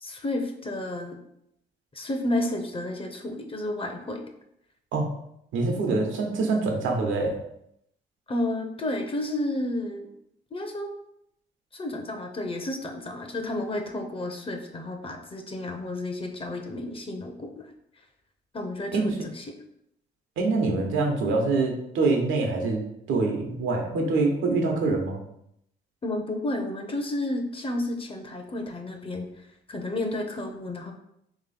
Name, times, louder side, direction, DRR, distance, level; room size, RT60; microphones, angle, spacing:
voice 1, 0.0-1.2 1.9-4.2 8.3-10.1 10.5-10.9 11.7-17.6 18.5-19.5 26.0-29.3 29.7-30.9, left 1 dB, 25° left, 4 dB, 0.7 m, -31 dB
voice 2, 5.5-7.3 18.9-19.3 20.4-22.8 23.1-25.2, right 3 dB, 80° right, 2 dB, 0.9 m, -25 dB
3.0 x 3.0 x 4.1 m, 0.76 s
cardioid pair, 90°, 20 cm